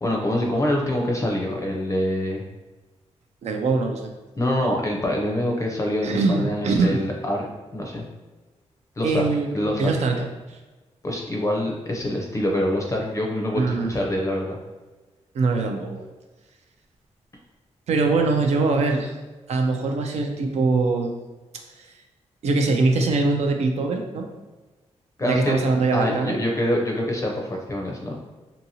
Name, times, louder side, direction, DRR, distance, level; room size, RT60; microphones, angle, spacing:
voice 1, 0.0-2.4 4.4-7.5 7.7-8.0 9.0-9.2 9.5-9.9 11.0-14.6 25.2-25.5 25.9-28.2, left 1 dB, 25° left, -1 dB, 0.5 m, -25 dB
voice 2, 3.4-4.1 6.0-7.0 9.0-10.6 13.5-13.9 15.3-16.0 17.9-19.2 19.5-21.1 21.8-21.9 22.4-24.3 25.2-26.4, right 3 dB, 70° right, 3 dB, 0.4 m, -22 dB
2.7 x 2.6 x 2.8 m, 1.2 s
wide cardioid pair, 115°, 12 cm